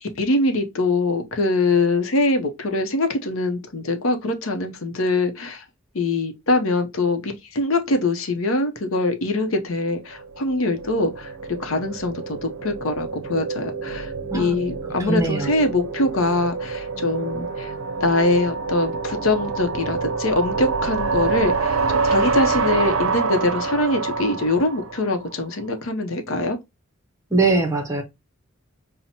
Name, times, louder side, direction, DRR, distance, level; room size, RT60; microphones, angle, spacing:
voice 1, 0.0-5.6 5.9-11.3 11.6-17.7 18.0-21.8 22.0-26.6, left 2 dB, 80° left, 0.7 m, -23 dB
sound 1, 10.1-25.4, right 4 dB, 85° right, 0.5 m, -27 dB
voice 2, 15.0-15.5 27.3-28.0, right 3 dB, 15° right, 0.6 m, -21 dB
5.5 x 2.1 x 2.7 m
head